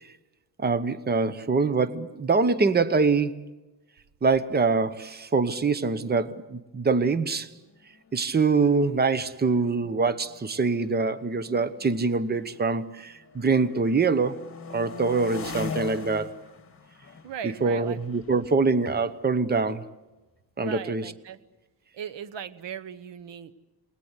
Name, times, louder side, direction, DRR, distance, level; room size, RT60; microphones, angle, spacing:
voice 1, 0.6-3.5 4.2-7.5 8.1-14.4 14.7-16.3 17.6-19.8 20.6-21.1, right 4 dB, 20° right, 0.9 m, -24 dB
sound 1, 7.4-7.5 7.8-8.1 8.9-12.8 13.2-19.8, left 5 dB, 30° left, 2.7 m, -42 dB
voice 2, 17.2-18.0 20.6-21.4 21.9-23.5, right 8 dB, 75° right, 1.2 m, -38 dB
28.5 x 19.5 x 8.2 m
wide cardioid pair, 135°, 43 cm